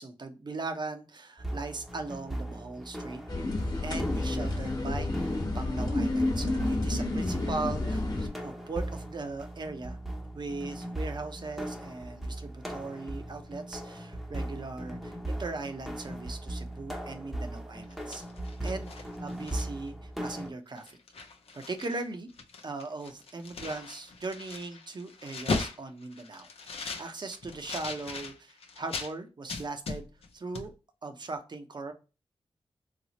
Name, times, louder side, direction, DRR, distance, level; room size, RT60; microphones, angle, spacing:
voice 1, 0.0-3.2 3.8-10.0 10.3-18.2 18.6-21.0 21.7-22.3 22.6-30.1 30.3-30.7 31.0-31.9, right 3 dB, 45° right, 0.7 m, -39 dB
sound 1, 1.4-20.5, right 1 dB, ahead, 0.7 m, -39 dB
sound 2, 3.3-8.3, left 2 dB, 40° left, 1.1 m, -30 dB
sound 3, 17.8-19.9 20.3-20.5 20.8-22.0 22.3-29.1 29.5-30.3 30.5-30.7, left 4 dB, 75° left, 0.6 m, -38 dB
4.1 x 2.0 x 2.9 m
cardioid pair, 60°, 10 cm